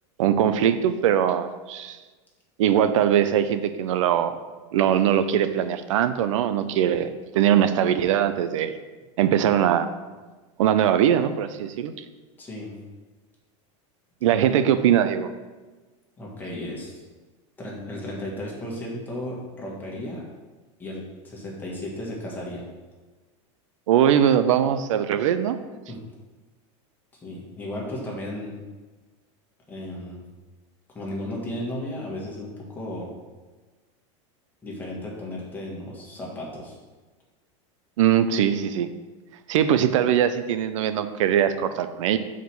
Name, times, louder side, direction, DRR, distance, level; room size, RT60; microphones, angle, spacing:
voice 1, 0.2-2.0 2.6-4.4 4.7-8.7 9.2-9.9 10.6-11.9 14.2-15.3 23.9-25.6 38.0-38.9 39.5-42.2, right 10 dB, 90° right, 11 dB, 0.6 m, -21 dB
voice 2, 12.4-12.7 14.3-14.5 16.2-17.1 17.6-20.3 20.8-22.6 25.9-26.0 27.2-28.5 29.7-30.2 30.9-33.1 34.6-36.8, left 1 dB, 10° left, -4 dB, 1.7 m, -34 dB
5.4 x 5.0 x 6.2 m, 1.3 s
supercardioid pair, 160°, 16 cm